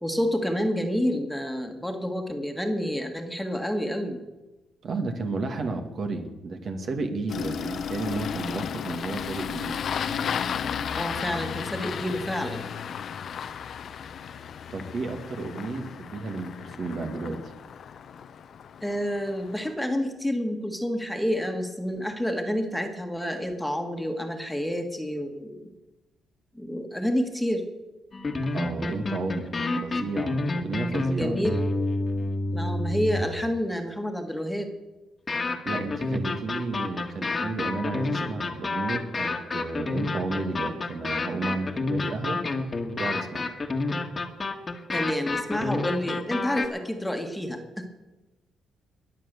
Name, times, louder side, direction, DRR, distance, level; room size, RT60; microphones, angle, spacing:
voice 1, 0.0-4.2 10.9-12.7 18.8-25.7 26.6-27.6 31.1-31.6 32.5-34.7 44.9-47.9, equal, 5° left, 4 dB, 1.8 m, -29 dB
voice 2, 4.8-9.8 14.7-17.5 28.5-31.4 35.6-42.4 43.0-43.5, right 3 dB, 55° right, 5 dB, 2.1 m, -32 dB
Engine starting, 7.3-19.7, left 7 dB, 60° left, 0.8 m, -34 dB
sound 1, 28.1-33.4 35.3-46.7, left 2 dB, 30° left, 1.6 m, -29 dB
21.5 x 7.6 x 6.8 m, 1.1 s
cardioid pair, 90°, 0 cm